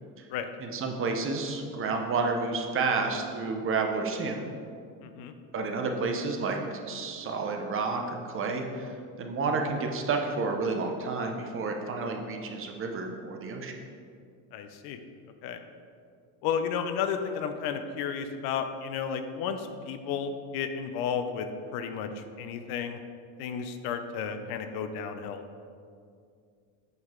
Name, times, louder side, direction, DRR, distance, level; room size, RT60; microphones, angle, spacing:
voice 1, 0.6-4.4 5.5-13.7, right 4 dB, 30° right, 3 dB, 0.8 m, -30 dB
voice 2, 5.0-5.3 14.5-15.0 15.4-15.6 16.4-23.0 23.4-25.4, left 7 dB, 60° left, 8 dB, 0.7 m, -33 dB
8.0 x 5.4 x 3.7 m, 2.3 s
supercardioid pair, 120°, 42 cm